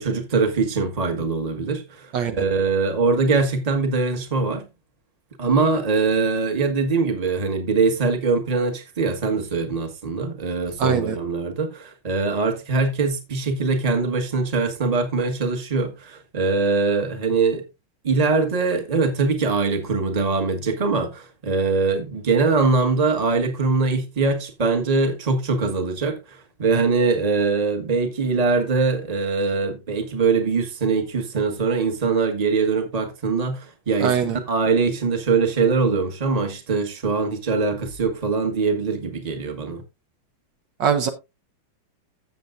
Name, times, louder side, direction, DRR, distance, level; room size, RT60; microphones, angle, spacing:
voice 1, 0.0-4.6 5.4-17.6 18.0-39.8, right 4 dB, 20° right, 1.3 m, -22 dB
voice 2, 10.8-11.2 34.0-34.4 40.8-41.1, right 7 dB, 65° right, 1.4 m, -21 dB
15.0 x 7.2 x 2.5 m
omnidirectional pair, 2.2 m